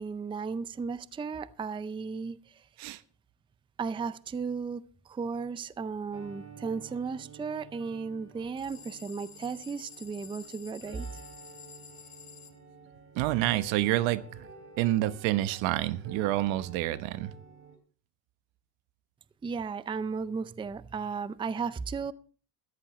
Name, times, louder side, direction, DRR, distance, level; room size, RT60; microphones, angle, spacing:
voice 1, 0.0-2.6 3.8-11.2 19.4-22.1, right 5 dB, 10° right, 15 dB, 0.5 m, -35 dB
sound 1, 6.1-17.8, right 4 dB, 30° right, 3.5 m, -51 dB
sound 2, 8.6-12.6, left 7 dB, 35° left, 2.0 m, -50 dB
voice 2, 13.1-14.5 14.8-17.3, right 15 dB, 75° right, 14 dB, 1.0 m, -28 dB
15.0 x 14.0 x 3.2 m, 0.40 s
cardioid pair, 115°, 45 cm